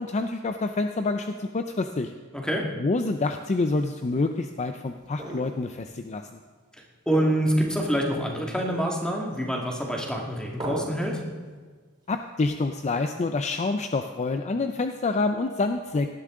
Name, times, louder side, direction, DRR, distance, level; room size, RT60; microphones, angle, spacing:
voice 1, 0.0-2.1 2.8-6.4 12.1-16.1, left 3 dB, 30° left, 7 dB, 0.5 m, -27 dB
voice 2, 2.3-2.7 7.1-11.2, equal, 5° left, 0 dB, 1.9 m, -26 dB
sound 1, 3.0-4.1 4.9-5.9 6.2-6.3 7.1-7.8 8.1-8.2 9.3-9.8 10.6-11.2 12.8-13.3, right 1 dB, 20° right, 3.0 m, -39 dB
17.5 x 11.0 x 3.7 m, 1.4 s
head